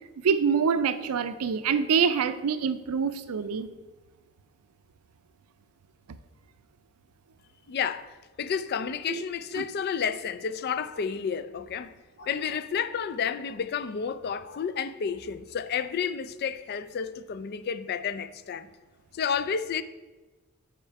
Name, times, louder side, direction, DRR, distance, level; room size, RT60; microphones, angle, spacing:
voice 1, 0.2-3.7 9.1-9.2 9.6-9.7, right 6 dB, 85° right, 0.5 m, -25 dB
voice 2, 7.7-11.9 12.2-18.7 19.1-19.8, left 7 dB, 45° left, 0.3 m, -31 dB
8.9 x 4.3 x 4.6 m
head